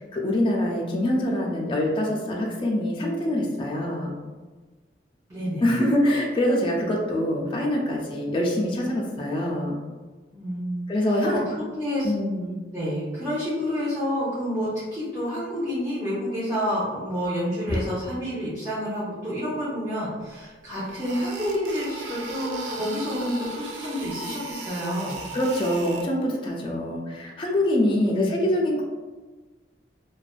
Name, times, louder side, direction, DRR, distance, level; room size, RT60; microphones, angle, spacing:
voice 1, 0.0-4.1 5.6-9.8 10.9-11.4 12.0-12.5 25.3-28.8, left 1 dB, 30° left, -2 dB, 0.3 m, -24 dB
voice 2, 5.3-5.7 10.3-10.8 11.1-12.1 12.7-25.2 27.9-28.3, equal, 20° right, -11 dB, 0.7 m, -29 dB
sound 1, 20.2-20.3 20.7-26.1, right 2 dB, 90° right, 0.4 m, -36 dB
2.4 x 2.2 x 2.3 m, 1.3 s
head